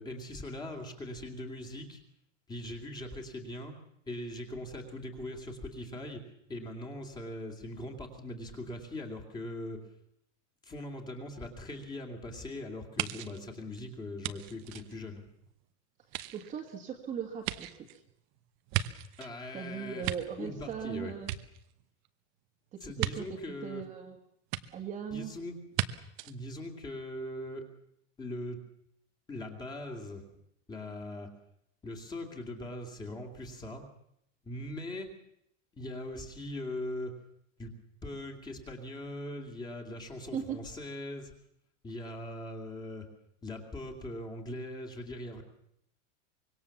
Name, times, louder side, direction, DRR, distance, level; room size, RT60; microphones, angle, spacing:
voice 1, 0.0-2.0 2.5-3.7 4.0-6.2 6.5-9.8 10.6-15.2 19.2-20.1 20.4-21.1 22.8-23.9 25.1-25.5 26.2-27.7 28.2-28.6 29.3-30.2 30.7-31.3 31.8-33.8 34.4-35.1 35.7-37.1 37.6-37.7 38.0-41.3 41.8-43.1 43.4-45.4, left 1 dB, 10° left, 3 dB, 2.5 m, -40 dB
sound 1, 13.0-15.6 16.0-19.4 19.8-20.9 21.2-22.1 23.0-23.1 24.5-24.6 25.7-25.9 26.2-26.3, right 14 dB, 35° right, 1.0 m, -36 dB
voice 2, 16.3-17.7 19.5-21.3 22.7-23.3 23.6-24.2 24.7-25.3 40.3-40.6, right 8 dB, 20° right, 1 dB, 1.9 m, -38 dB
25.0 x 22.5 x 7.2 m, 0.76 s
supercardioid pair, 180°, 37 cm